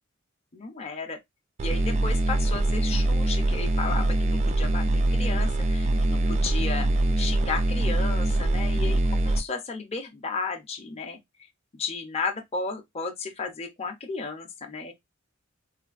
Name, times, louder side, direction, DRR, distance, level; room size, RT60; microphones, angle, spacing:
voice 1, 0.5-1.2 1.6-6.9 7.2-11.2 11.8-14.9, left 4 dB, 30° left, 0.5 m, -34 dB
sound 1, 1.6-9.4, right 1 dB, 35° right, 0.3 m, -23 dB
3.2 x 2.3 x 2.4 m
head